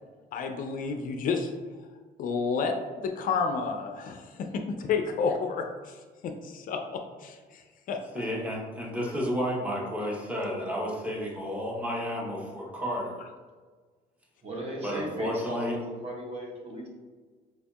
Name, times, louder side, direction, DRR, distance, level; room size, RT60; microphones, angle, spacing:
voice 1, 0.3-1.5 2.2-2.7 3.0-8.2, left 5 dB, 55° left, 5 dB, 0.4 m, -31 dB
voice 2, 8.1-13.2 14.8-15.8, equal, 10° right, -2 dB, 0.8 m, -32 dB
voice 3, 14.4-16.9, right 1 dB, 35° right, -1 dB, 0.9 m, -36 dB
4.5 x 2.6 x 2.3 m, 1.4 s
cardioid pair, 110°, 17 cm